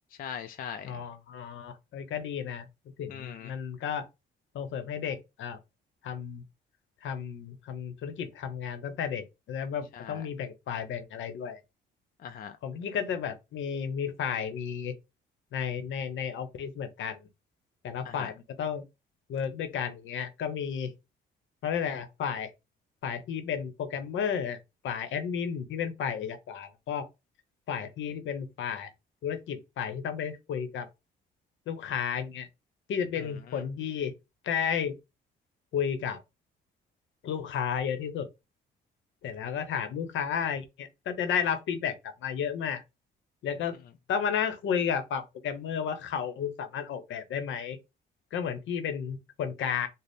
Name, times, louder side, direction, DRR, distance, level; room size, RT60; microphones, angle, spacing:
voice 1, 0.1-1.0 3.1-3.5 9.9-10.3 12.2-12.6 18.0-18.3 33.2-33.6, left 8 dB, 45° left, 0.4 m, -41 dB
voice 2, 0.8-2.7 3.0-4.1 4.5-5.6 6.0-6.4 7.0-11.6 12.6-14.9 15.5-17.3 17.8-18.8 19.3-20.9 21.6-22.5 23.0-24.6 24.8-27.1 27.7-28.9 29.2-30.9 31.7-32.5 32.9-34.1 34.4-34.9 35.7-36.2 37.2-38.3 39.2-42.0 42.2-42.8 43.4-43.8 44.1-47.8 48.3-49.9, left 7 dB, 75° left, 0.8 m, -32 dB
3.9 x 2.1 x 3.5 m
cardioid pair, 90°, 20 cm